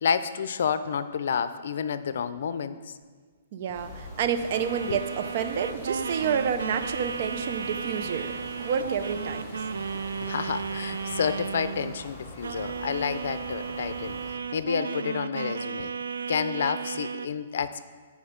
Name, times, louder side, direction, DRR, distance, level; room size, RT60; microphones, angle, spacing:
voice 1, 0.0-2.8 4.9-5.0 10.2-14.2 14.5-15.9 16.3-17.8, left 7 dB, 70° left, 13 dB, 0.5 m, -29 dB
voice 2, 3.5-9.6, right 7 dB, 50° right, 9 dB, 0.6 m, -29 dB
sound 1, 3.7-14.3, left 1 dB, 15° right, 2.4 m, -45 dB
sound 2, 4.3-11.3, equal, 10° left, 2.9 m, -49 dB
sound 3, 4.5-12.1 12.4-17.3, right 5 dB, 90° right, 0.4 m, -34 dB
10.5 x 5.0 x 5.2 m, 1.5 s
hypercardioid pair, 145°, 0 cm